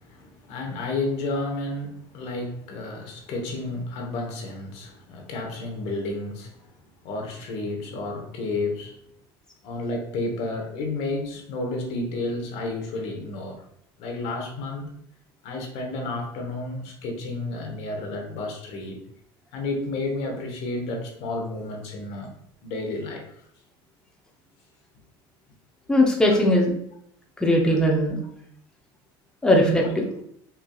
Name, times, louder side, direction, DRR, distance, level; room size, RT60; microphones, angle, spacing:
voice 1, 0.0-6.7 7.0-9.0 9.6-13.6 14.0-14.9 15.4-19.0 19.5-22.3 22.6-23.3 26.3-26.4 29.8-29.9, left 2 dB, 60° left, 1.1 m, -31 dB
voice 2, 25.9-26.7 27.4-28.2 29.4-30.1, left 1 dB, 5° left, 0.7 m, -19 dB
5.6 x 2.7 x 2.3 m
supercardioid pair, 115°, 12 cm